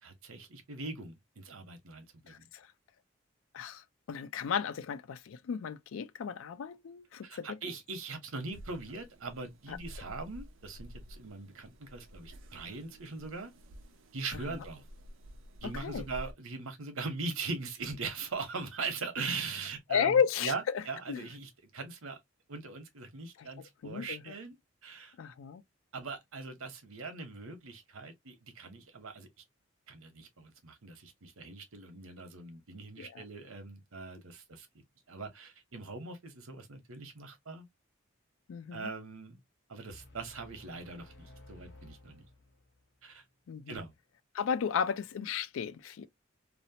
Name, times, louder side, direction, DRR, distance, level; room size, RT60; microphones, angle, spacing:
voice 1, 0.0-2.5 7.2-13.5 14.1-14.8 15.6-22.2 22.5-24.6 24.8-25.1 25.9-29.3 29.9-34.7 35.1-37.7 38.7-39.4 39.7-42.2 43.0-43.2 43.7-43.9, right 4 dB, 90° right, 0.9 m, -41 dB
voice 2, 2.3-2.7 3.5-7.6 9.7-9.8 15.6-16.0 19.9-21.2 23.4-23.5 23.8-24.3 25.2-25.6 33.0-33.2 38.5-38.9 43.5-43.8 44.3-46.1, left 7 dB, 75° left, 0.3 m, -34 dB
sound 1, 8.5-16.3, equal, 70° right, 0.5 m, -50 dB
sound 2, 39.9-42.9, left 2 dB, 55° left, 0.7 m, -55 dB
2.8 x 2.0 x 2.7 m
head